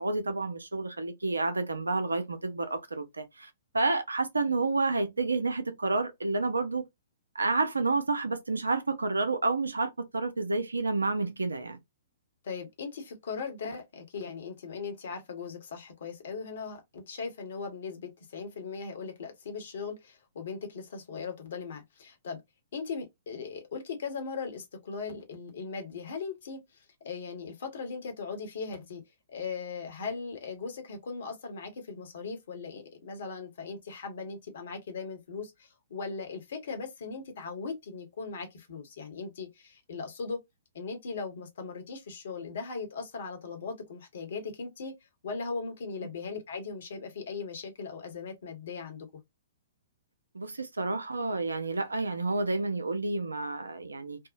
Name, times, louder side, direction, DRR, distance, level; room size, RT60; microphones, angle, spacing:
voice 1, 0.0-6.8 7.3-11.8 50.3-54.2, right 3 dB, 85° right, 0.5 m, -30 dB
voice 2, 12.4-22.4 22.7-29.0 29.3-40.4 40.7-44.9 45.2-49.2, left 5 dB, 60° left, 1.0 m, -39 dB
2.7 x 2.0 x 2.4 m
figure-of-eight pair, 120°, 0 cm